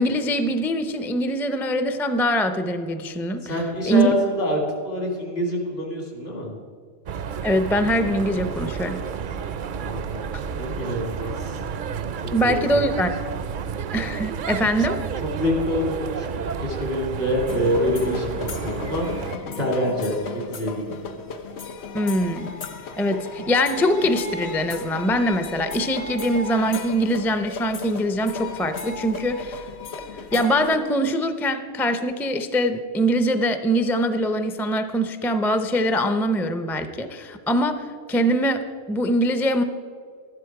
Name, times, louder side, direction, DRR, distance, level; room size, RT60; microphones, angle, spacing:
voice 1, 0.0-3.5 3.9-4.1 7.4-9.0 12.3-13.1 13.9-15.0 21.9-22.5 23.0-29.7 30.3-39.6, equal, 5° left, 9 dB, 0.4 m, -23 dB
voice 2, 3.4-6.5 9.8-11.6 12.2-12.8 15.2-19.1 19.6-20.9, equal, 70° left, 0 dB, 3.0 m, -26 dB
sound 1, 7.1-19.4, right 6 dB, 60° right, 0.6 m, -31 dB
sound 2, 17.5-30.8, left 4 dB, 90° left, 1.2 m, -35 dB
12.5 x 11.0 x 4.8 m, 2.2 s
omnidirectional pair, 1.1 m